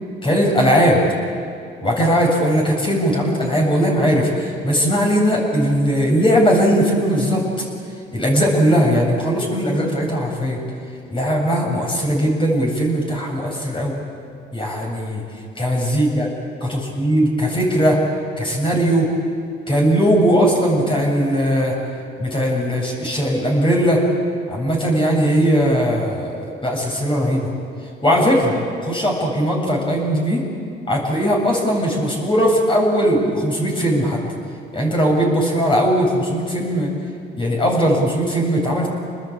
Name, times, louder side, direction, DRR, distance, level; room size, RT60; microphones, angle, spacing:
voice 1, 0.2-1.0 1.8-7.4 8.1-10.6 11.1-13.9 14.5-15.2 15.6-16.3 16.6-18.0 18.4-19.1 19.7-21.8 22.2-24.0 24.5-27.5 28.0-28.6 28.8-30.4 30.9-34.2 34.7-36.9 37.4-38.9, equal, 25° left, -1 dB, 7.5 m, -19 dB
29.0 x 20.5 x 8.9 m, 2.3 s
cardioid pair, 90°, 20 cm